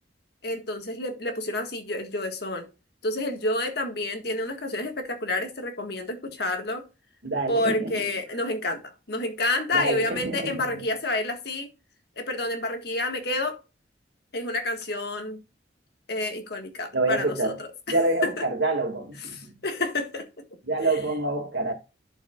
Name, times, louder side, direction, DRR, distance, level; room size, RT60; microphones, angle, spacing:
voice 1, 0.4-2.7 3.0-6.8 7.5-11.7 12.2-13.6 14.3-15.4 16.1-18.4 19.2-20.4 20.8-21.0, left 2 dB, 60° left, 1.7 m, -29 dB
voice 2, 7.2-8.0 9.7-10.8 16.9-17.6 17.9-19.5 20.6-21.7, right 2 dB, 80° right, 2.3 m, -27 dB
12.0 x 5.4 x 2.4 m
head